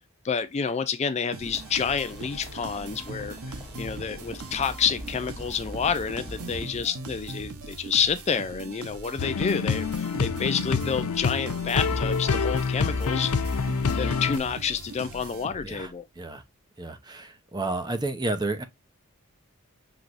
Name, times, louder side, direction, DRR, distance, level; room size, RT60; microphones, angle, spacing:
voice 1, 0.2-13.3 14.0-16.1, left 6 dB, 30° left, 0.4 m, -29 dB
sound 1, 1.3-15.9, right 3 dB, 80° right, 0.9 m, -40 dB
sound 2, 1.5-6.7, left 1 dB, ahead, 1.8 m, -43 dB
sound 3, 9.2-14.4, left 5 dB, 85° left, 0.6 m, -27 dB
voice 2, 15.6-16.4 16.8-18.6, right 2 dB, 20° right, 0.6 m, -31 dB
6.0 x 3.0 x 2.5 m
head